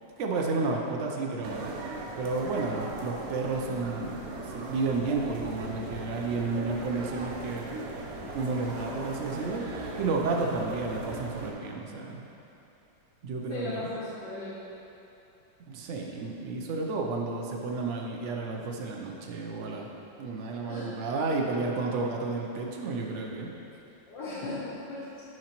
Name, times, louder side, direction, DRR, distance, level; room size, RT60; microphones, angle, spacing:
voice 1, 0.2-1.8 2.2-7.7 8.3-12.2 13.2-13.9 15.7-19.9 20.2-23.5, right 3 dB, 85° right, 0 dB, 0.6 m, -31 dB
sound 1, 1.4-11.5, right 2 dB, 65° right, 1.0 m, -39 dB
voice 2, 13.5-14.6 20.7-21.0 24.1-25.1, left 2 dB, 75° left, -8 dB, 1.6 m, -37 dB
9.3 x 5.1 x 2.9 m, 2.9 s
omnidirectional pair, 2.0 m